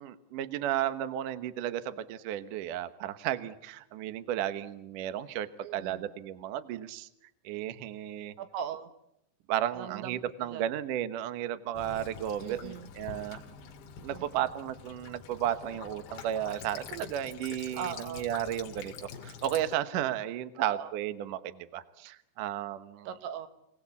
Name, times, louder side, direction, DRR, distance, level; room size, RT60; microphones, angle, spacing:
voice 1, 0.0-7.1 7.4-8.3 9.5-13.4 14.0-23.1, right 11 dB, 90° right, 12 dB, 1.8 m, -34 dB
voice 2, 5.6-6.1 8.4-8.9 9.8-10.7 12.4-12.9 14.1-14.5 17.7-18.3 20.7-20.9 23.1-23.5, right 8 dB, 75° right, 9 dB, 3.7 m, -39 dB
Child speech kid speaking / Bird vocalization bird call bird song / Stream, 11.8-19.7, left 7 dB, 70° left, 3.9 m, -46 dB
27.0 x 18.5 x 8.4 m, 0.79 s
omnidirectional pair, 5.6 m